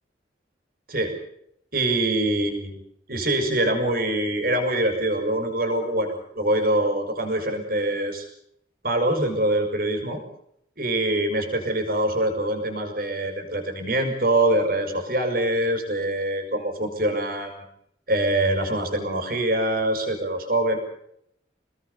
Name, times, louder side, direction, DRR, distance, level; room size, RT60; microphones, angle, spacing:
voice 1, 0.9-1.2 1.7-2.8 3.1-8.3 8.8-10.2 10.8-17.6 18.1-20.8, right 1 dB, 50° right, 5 dB, 6.5 m, -24 dB
29.0 x 20.0 x 7.0 m, 0.75 s
head